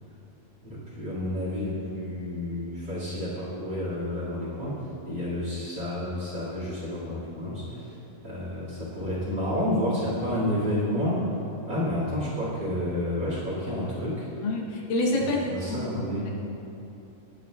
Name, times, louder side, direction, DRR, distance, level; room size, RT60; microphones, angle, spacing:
voice 1, 0.6-7.9 8.2-11.3 11.7-14.3 15.2-16.2, left 1 dB, 35° right, -7 dB, 2.5 m, -30 dB
voice 2, 14.4-15.4 15.7-15.8, left 2 dB, 75° left, -1 dB, 2.6 m, -26 dB
20.0 x 9.4 x 2.4 m, 2.8 s
omnidirectional pair, 4.0 m